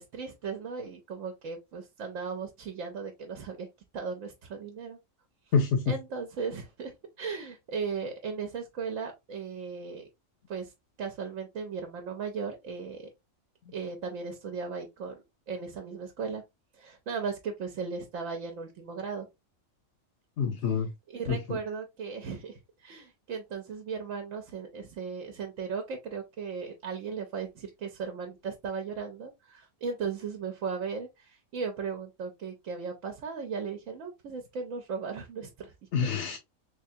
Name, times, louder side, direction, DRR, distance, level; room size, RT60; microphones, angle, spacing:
voice 1, 0.0-3.7 3.9-5.0 5.9-6.9 7.2-10.1 10.5-10.7 11.0-13.1 13.7-16.4 16.7-19.3 21.1-35.7, right 5 dB, 75° right, 1.1 m, -37 dB
voice 2, 5.5-6.0 20.4-20.9 21.3-21.6 35.9-36.4, left 6 dB, 65° left, 0.9 m, -27 dB
3.5 x 3.4 x 2.7 m
omnidirectional pair, 1.4 m